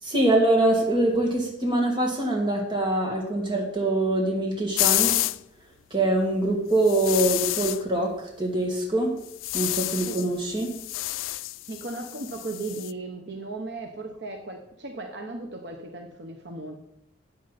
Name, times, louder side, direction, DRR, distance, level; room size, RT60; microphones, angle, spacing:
voice 1, 0.0-5.2 5.9-9.2 9.5-10.7, right 1 dB, 25° right, 0 dB, 2.4 m, -24 dB
sound 1, 4.8-5.4 6.8-7.8 9.3-10.3 10.6-12.9, left 17 dB, 85° left, 0.3 m, -28 dB
voice 2, 11.7-16.8, right 2 dB, 60° right, 3 dB, 1.1 m, -36 dB
13.0 x 8.5 x 4.2 m, 0.77 s
head